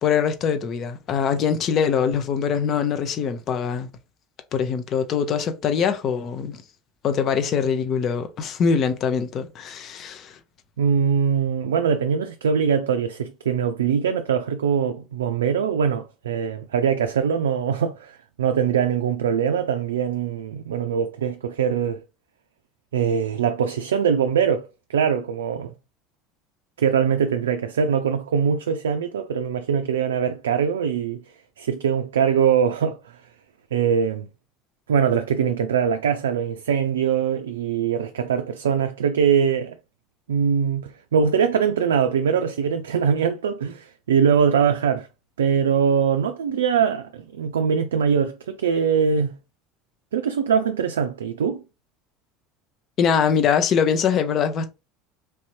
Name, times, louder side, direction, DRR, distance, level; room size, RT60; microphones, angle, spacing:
voice 1, 0.0-3.9 4.5-6.6 7.0-10.4 53.0-54.7, left 7 dB, 50° left, 0.7 m, -23 dB
voice 2, 10.8-22.0 22.9-25.7 26.8-31.2 31.6-33.2 33.7-34.3 34.9-39.8 40.3-45.1 45.4-49.3 50.1-51.6, right 7 dB, 85° right, 0.3 m, -22 dB
3.3 x 2.7 x 3.1 m
hypercardioid pair, 75°, 0 cm